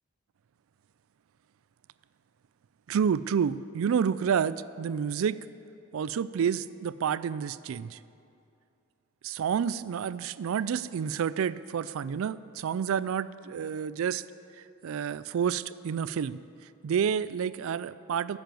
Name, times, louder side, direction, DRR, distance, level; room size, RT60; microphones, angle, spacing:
voice 1, 2.9-5.4 5.9-8.0 9.2-14.2 14.8-16.4 16.8-18.4, right 7 dB, 70° right, 17 dB, 0.3 m, -29 dB
11.5 x 7.6 x 7.7 m, 2.6 s
head